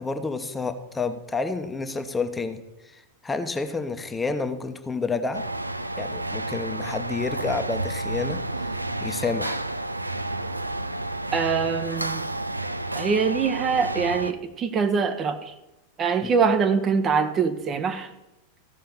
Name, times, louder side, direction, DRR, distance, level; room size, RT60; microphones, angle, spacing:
voice 1, 0.0-5.4 6.0-8.7 9.0-9.6 16.2-16.3, left 4 dB, 10° left, 8 dB, 0.9 m, -29 dB
sound 1, 5.3-14.3, right 2 dB, 85° right, 0.4 m, -30 dB
voice 2, 11.3-12.2 12.9-15.5 16.0-18.1, right 5 dB, 25° right, 8 dB, 0.8 m, -24 dB
14.5 x 5.7 x 6.8 m, 1.0 s
figure-of-eight pair, 90°, 0 cm